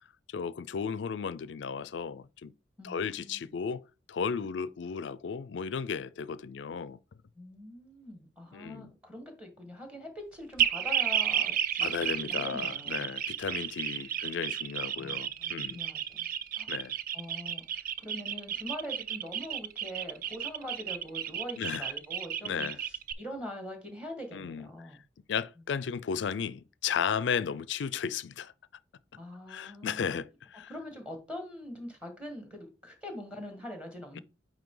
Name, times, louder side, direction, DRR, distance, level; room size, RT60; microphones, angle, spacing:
voice 1, 0.3-2.5 2.8-7.0 8.5-8.9 11.8-15.8 16.7-16.9 21.6-21.9 22.4-22.8 24.3-24.7 25.3-28.5 29.5-30.7 34.1-34.2, left 6 dB, 70° left, 0.4 m, -34 dB
voice 2, 2.8-3.5 7.4-13.1 14.0-14.1 14.9-16.3 16.6-16.7 17.1-25.0 29.1-30.2 30.7-34.2, left 1 dB, 5° right, 1.6 m, -43 dB
sound 1, 10.6-23.1, right 9 dB, 50° right, 0.4 m, -32 dB
8.8 x 3.2 x 3.8 m
head